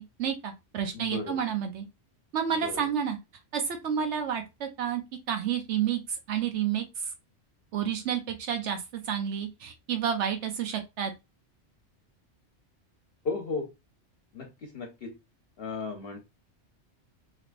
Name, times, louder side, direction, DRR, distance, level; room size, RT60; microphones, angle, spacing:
voice 1, 0.0-1.8 2.3-3.2 3.5-5.0 5.3-7.1 7.7-11.1, right 8 dB, 75° right, 5 dB, 0.9 m, -30 dB
voice 2, 0.9-1.4 2.6-2.8 13.2-13.7 14.3-15.1 15.6-16.2, left 4 dB, 60° left, 4 dB, 0.8 m, -35 dB
3.4 x 2.9 x 2.4 m, 0.23 s
omnidirectional pair, 1.2 m